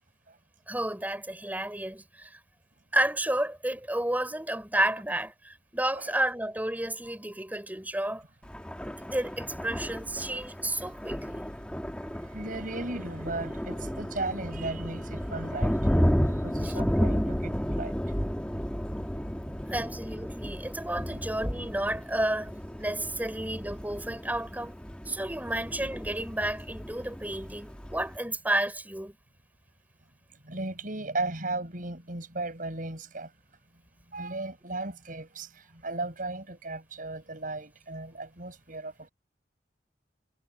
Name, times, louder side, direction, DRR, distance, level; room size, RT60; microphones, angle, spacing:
voice 1, 0.7-2.3 2.9-8.2 9.0-11.5 16.6-16.7 19.7-24.7 25.0-29.2, right 1 dB, 10° right, 4.5 m, -31 dB
Thunder, 8.4-28.2, equal, 5° left, 1.2 m, -33 dB
voice 2, 12.3-16.0 16.4-17.9 21.1-21.2 30.4-33.3 34.1-39.1, right 2 dB, 50° right, 7.0 m, -36 dB
head